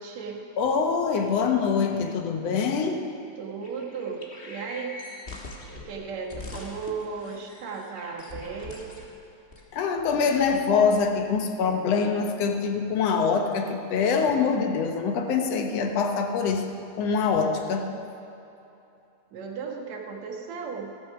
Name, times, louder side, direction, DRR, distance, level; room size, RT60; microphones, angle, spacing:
voice 1, 0.0-0.4 3.4-5.0 5.7-9.0 19.3-20.9, right 5 dB, 70° right, 1 dB, 2.7 m, -35 dB
voice 2, 0.6-3.1 9.7-16.7 17.0-17.9, left 5 dB, 65° left, 5 dB, 2.0 m, -24 dB
sound 1, 3.6-5.9 6.3-9.1 9.5-9.6, left 3 dB, 30° left, 1.1 m, -42 dB
14.0 x 14.0 x 5.9 m, 2.9 s
omnidirectional pair, 3.3 m